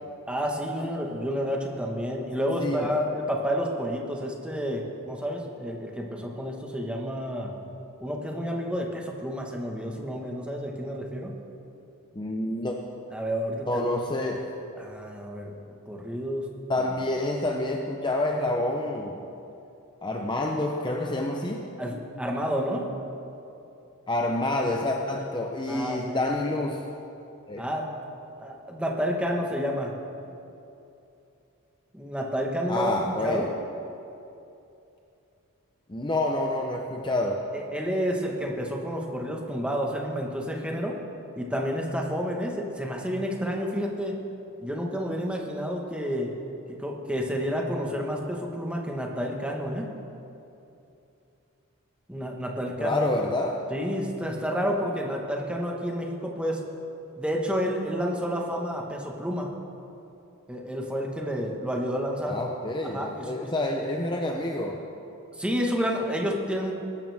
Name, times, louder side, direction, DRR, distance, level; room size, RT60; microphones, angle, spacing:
voice 1, 0.3-7.5 8.0-11.3 13.1-13.8 14.7-15.5 15.9-16.5 21.8-22.9 25.7-26.2 27.6-27.9 28.4-29.9 31.9-33.0 33.2-33.5 37.5-41.0 41.3-44.2 44.6-46.3 46.8-49.9 52.1-53.1 53.7-56.6 57.2-59.5 60.5-62.4 62.8-63.5 65.4-66.7, equal, 5° right, -1 dB, 1.4 m, -30 dB
voice 2, 12.1-12.8 13.7-14.4 16.7-19.2 20.0-21.7 24.1-26.8 27.5-27.7 32.7-33.5 35.9-37.5 52.8-53.6 62.3-64.8, left 2 dB, 20° left, 1 dB, 0.7 m, -28 dB
21.0 x 12.5 x 3.5 m, 2.8 s
head